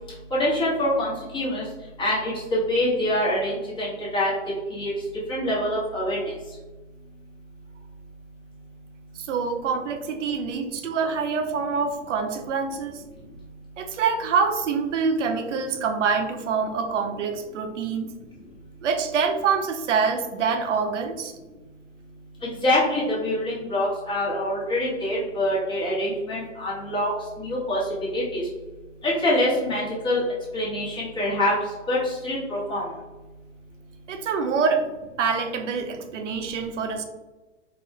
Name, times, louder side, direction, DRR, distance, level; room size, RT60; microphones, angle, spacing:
voice 1, 0.3-1.6 2.0-4.3 4.7-4.9 5.3-6.2 22.6-27.1 27.4-27.8 28.1-28.4 29.0-30.2 30.5-31.6 31.9-32.9, left 1 dB, 15° left, -6 dB, 1.2 m, -25 dB
voice 2, 9.2-13.0 13.8-18.1 18.8-21.3 34.1-34.9 35.2-37.0, right 5 dB, 70° right, 6 dB, 0.8 m, -25 dB
4.4 x 2.5 x 3.6 m, 1.2 s
hypercardioid pair, 135°, 38 cm